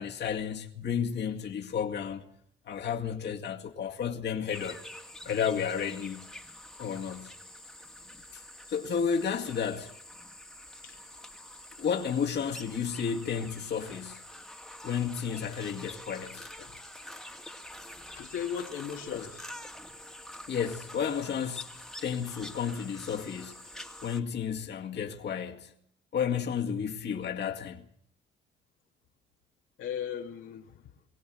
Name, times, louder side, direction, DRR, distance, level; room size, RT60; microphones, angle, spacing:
voice 1, 0.0-2.2 2.7-4.8 5.3-6.3 6.8-7.3 8.3-8.4 8.7-9.9 11.8-14.2 14.8-16.5 19.1-19.2 20.5-23.7 24.0-25.7 26.1-27.9, left 7 dB, 60° left, 2.1 m, -32 dB
sound 1, 4.5-24.2, left 1 dB, ahead, 2.0 m, -46 dB
voice 2, 18.1-19.5 29.8-30.9, left 8 dB, 80° left, 2.2 m, -37 dB
23.5 x 17.0 x 7.8 m
cardioid pair, 90°, 20 cm